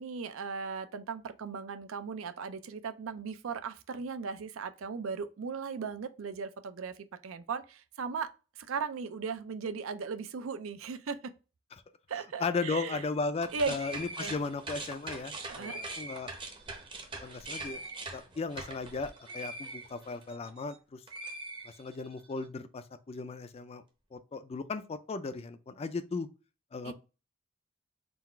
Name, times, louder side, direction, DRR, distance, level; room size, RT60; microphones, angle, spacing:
voice 1, 0.0-6.9 7.2-8.3 8.6-11.3 12.1-13.0 13.5-13.7 14.2-14.3 15.5-15.8 26.8-26.9, right 5 dB, 80° right, 0.4 m, -37 dB
voice 2, 12.4-16.3 17.2-17.8 18.1-21.0 21.6-23.8 24.1-26.3 26.7-26.9, left 4 dB, 30° left, 0.3 m, -36 dB
sound 1, 13.3-20.8 21.1-22.2, right 2 dB, 25° right, 0.7 m, -42 dB
3.9 x 2.4 x 4.3 m
head